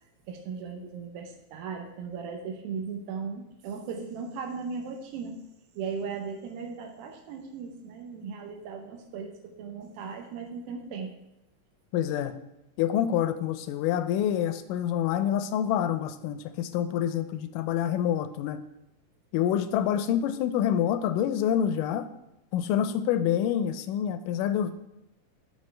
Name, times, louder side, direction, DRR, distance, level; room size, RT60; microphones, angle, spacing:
voice 1, 0.3-5.4 5.8-11.1, right 5 dB, 90° right, 3 dB, 2.7 m, -37 dB
voice 2, 11.9-12.4 12.8-18.6 19.3-22.1 22.5-24.8, left 10 dB, 80° left, 11 dB, 1.9 m, -27 dB
13.5 x 5.5 x 3.3 m, 0.87 s
omnidirectional pair, 4.1 m